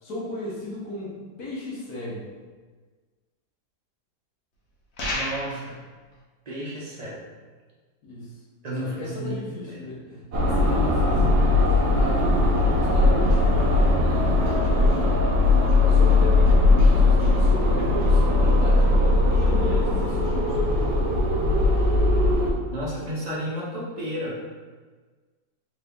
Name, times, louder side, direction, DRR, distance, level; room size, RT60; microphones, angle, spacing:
voice 1, 0.0-2.2 8.0-8.4 8.8-13.9 14.5-15.2 15.9-20.6, left 1 dB, 65° left, -6 dB, 1.5 m, -35 dB
sound 1, 5.0-5.7, left 1 dB, 85° left, 1.6 m, -30 dB
voice 2, 5.1-5.8 6.5-7.2 8.6-9.4 9.6-9.9 22.7-24.4, equal, 35° right, -6 dB, 0.7 m, -32 dB
sound 2, 10.3-22.5, left 2 dB, 75° right, 1.3 m, -19 dB
4.0 x 2.7 x 3.4 m, 1.4 s
omnidirectional pair, 1.8 m